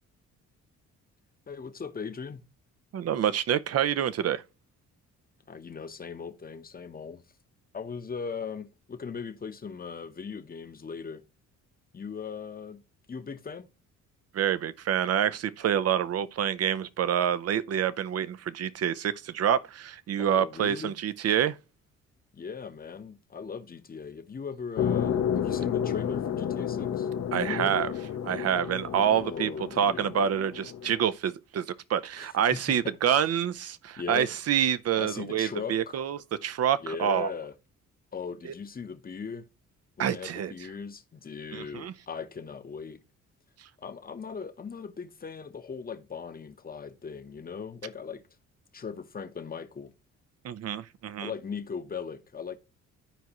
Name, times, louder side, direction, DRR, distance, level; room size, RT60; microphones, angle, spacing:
voice 1, 1.5-2.4 5.5-7.2 7.7-11.2 11.9-12.8 13.1-13.7 20.2-20.9 22.3-27.1 27.4-27.8 29.2-30.1 32.2-33.0 34.0-34.3 35.0-36.0 36.8-37.5 38.1-39.4 40.0-43.0 43.8-48.2 48.7-49.9 51.2-52.6, left 5 dB, 30° left, 0.9 m, -39 dB
voice 2, 2.9-4.4 14.3-21.6 27.3-27.9 28.2-29.5 29.8-37.3 38.4-38.5 40.0-40.5 41.5-41.9 50.4-51.3, right 9 dB, 55° right, 0.6 m, -27 dB
sound 1, 24.8-31.1, left 8 dB, 55° left, 0.8 m, -31 dB
12.0 x 4.7 x 3.0 m
cardioid pair, 90°, 30 cm